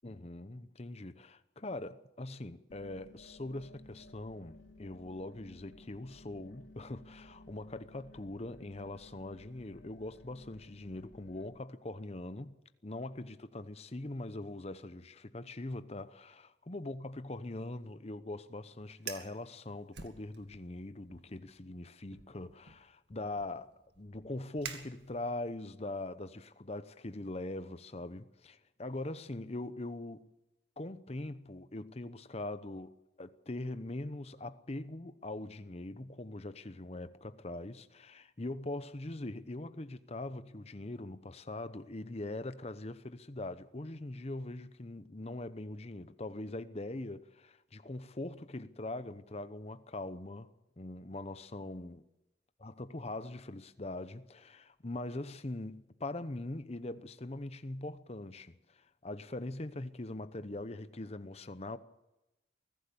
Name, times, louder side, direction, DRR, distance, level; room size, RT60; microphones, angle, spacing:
voice 1, 0.0-12.6 12.8-30.3 30.8-50.5 50.8-52.0 52.6-61.8, left 2 dB, 35° left, 0.9 m, -42 dB
sound 1, 2.7-11.4, left 2 dB, 80° left, 3.1 m, -57 dB
Fire, 18.9-19.4 19.9-20.7 21.1-21.4 22.1-25.5, right 7 dB, 60° right, 2.1 m, -48 dB
23.5 x 16.0 x 7.0 m
head